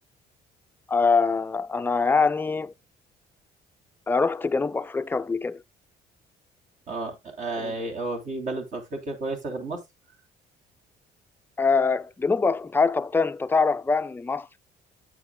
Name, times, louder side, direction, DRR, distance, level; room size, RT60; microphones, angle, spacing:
voice 1, 0.9-2.7 4.1-5.6 7.6-7.7 11.6-14.5, left 4 dB, 10° left, 0.4 m, -24 dB
voice 2, 6.9-9.8, right 2 dB, 45° right, 3.2 m, -32 dB
9.6 x 7.8 x 2.2 m
cardioid pair, 110°, 17 cm